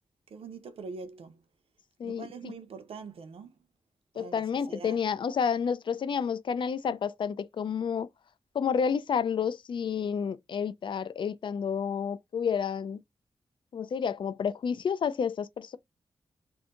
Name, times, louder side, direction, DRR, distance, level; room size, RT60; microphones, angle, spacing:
voice 1, 0.3-1.4 2.0-3.6 4.1-5.0, right 4 dB, 80° right, 0.6 m, -43 dB
voice 2, 2.0-2.5 4.2-8.1 8.5-13.0 13.7-15.8, left 7 dB, 60° left, 0.3 m, -30 dB
2.6 x 2.6 x 3.5 m
wide cardioid pair, 100°, 10 cm